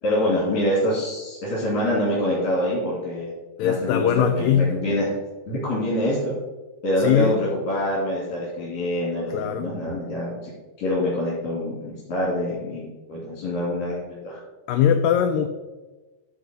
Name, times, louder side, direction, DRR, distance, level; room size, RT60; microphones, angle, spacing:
voice 1, 0.0-3.3 3.6-5.2 5.5-6.3 6.8-10.5 10.8-14.4, left 1 dB, 65° left, -7 dB, 4.6 m, -25 dB
voice 2, 3.6-4.8 7.0-7.4 9.3-9.7 14.7-15.5, left 8 dB, 85° left, 7 dB, 2.0 m, -20 dB
12.5 x 4.5 x 5.2 m, 1.2 s
omnidirectional pair, 4.4 m